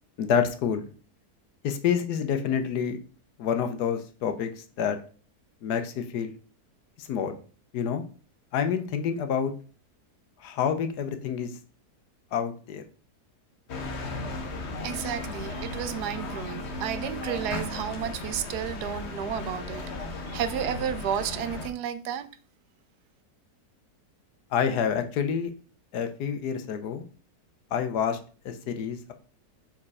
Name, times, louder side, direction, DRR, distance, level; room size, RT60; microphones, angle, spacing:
voice 1, 0.2-0.9 1.6-3.0 3.4-5.0 5.6-6.3 7.0-7.4 7.7-8.0 8.5-9.5 10.4-11.6 12.3-12.8 24.5-25.5 25.9-27.1 27.7-28.2 28.4-29.1, left 7 dB, 80° left, 1.3 m, -28 dB
sound 1, 13.7-21.7, left 2 dB, 50° left, 1.1 m, -35 dB
voice 2, 14.8-22.3, right 9 dB, 80° right, 1.2 m, -32 dB
4.9 x 4.2 x 4.8 m
omnidirectional pair, 1.7 m